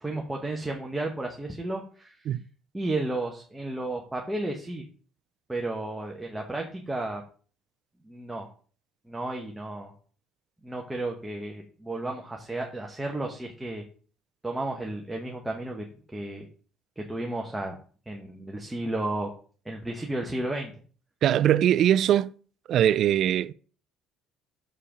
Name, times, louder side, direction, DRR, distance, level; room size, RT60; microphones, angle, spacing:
voice 1, 0.0-2.3 2.7-4.8 5.5-7.2 8.0-8.5 9.1-9.9 10.6-13.8 14.4-15.8 16.1-16.5 17.0-17.8 18.1-19.3 19.6-20.7, right 2 dB, 5° right, 1.0 m, -33 dB
voice 2, 21.2-22.3 22.7-23.5, right 11 dB, 50° right, 0.4 m, -21 dB
6.8 x 5.6 x 5.0 m
cardioid pair, 150°, 0 cm